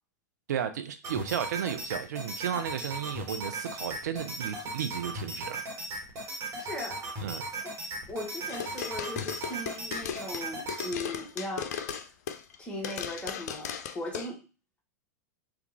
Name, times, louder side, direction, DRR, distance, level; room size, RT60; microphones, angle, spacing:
voice 1, 0.5-5.6 7.2-7.4, right 9 dB, 75° right, 0.6 m, -33 dB
sound 1, 1.0-10.9, right 1 dB, 35° right, 1.4 m, -37 dB
voice 2, 6.6-7.0 7.6-7.8 8.1-12.0 12.6-14.4, left 1 dB, 10° left, 1.4 m, -38 dB
sound 2, 8.5-12.6 12.8-14.3, left 8 dB, 65° left, 0.5 m, -36 dB
3.4 x 2.4 x 3.1 m
hypercardioid pair, 105°, 9 cm